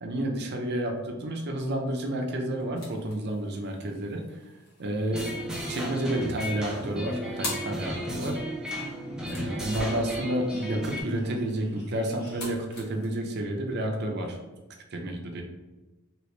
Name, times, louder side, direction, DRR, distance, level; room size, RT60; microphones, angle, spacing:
voice 1, 0.0-4.2 4.8-5.3 5.7-8.4 9.3-14.4 14.9-15.4, right 1 dB, 50° right, 2 dB, 0.6 m, -30 dB
sound 1, 2.5-8.0 9.2-13.1, left 1 dB, 85° left, 1.3 m, -45 dB
sound 2, 5.1-11.0, equal, 5° right, 0.5 m, -34 dB
3.0 x 2.9 x 3.2 m, 1.1 s
head